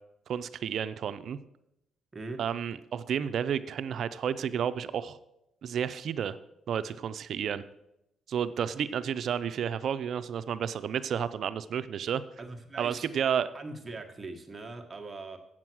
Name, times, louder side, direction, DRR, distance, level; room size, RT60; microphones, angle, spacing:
voice 1, 0.3-1.4 2.4-5.2 5.6-6.4 6.7-7.6 8.3-12.2 12.8-13.5, right 8 dB, 65° right, 13 dB, 0.5 m, -31 dB
voice 2, 2.1-2.4 12.4-13.1 13.5-15.4, right 3 dB, 25° right, 3 dB, 1.4 m, -41 dB
7.8 x 7.4 x 6.1 m, 0.86 s
cardioid pair, 90°, 0 cm